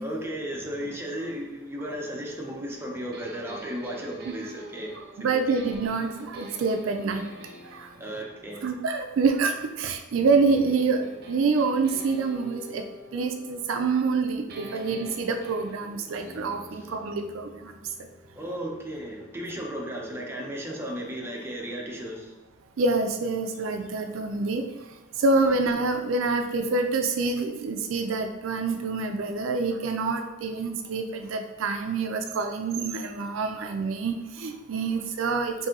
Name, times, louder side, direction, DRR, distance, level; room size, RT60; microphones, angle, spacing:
voice 1, 0.0-5.0 5.3-5.6 8.0-8.7 16.7-16.9 18.3-22.4, equal, 10° right, -2 dB, 0.7 m, -35 dB
sound 1, 3.1-9.7 10.1-14.2 14.5-20.2, equal, 55° right, 0.7 m, -47 dB
voice 2, 5.2-7.3 7.7-7.9 8.6-12.8 13.1-17.7 22.8-24.6 25.2-35.7, right 4 dB, 80° right, 6 dB, 0.4 m, -26 dB
4.1 x 2.7 x 3.7 m, 1.1 s
head